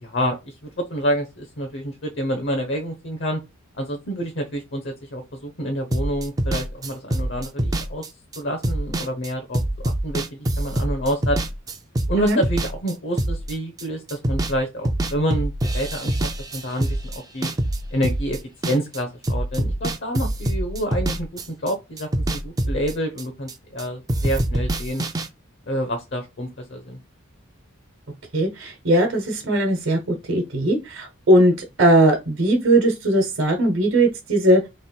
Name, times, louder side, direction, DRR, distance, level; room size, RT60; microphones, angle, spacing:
voice 1, 0.0-0.5 0.9-3.4 3.8-8.0 8.4-11.4 12.1-17.5 17.9-18.4 18.7-25.0 25.7-27.0, equal, 55° left, 0.9 m, -28 dB
sound 1, 5.9-13.8 14.1-14.6 14.8-19.0 19.2-21.7 22.0-23.8 24.1-25.3, right 1 dB, 20° right, 0.4 m, -25 dB
voice 2, 28.3-30.0 30.3-34.6, right 1 dB, 65° right, 1.1 m, -19 dB
3.3 x 3.0 x 4.5 m
head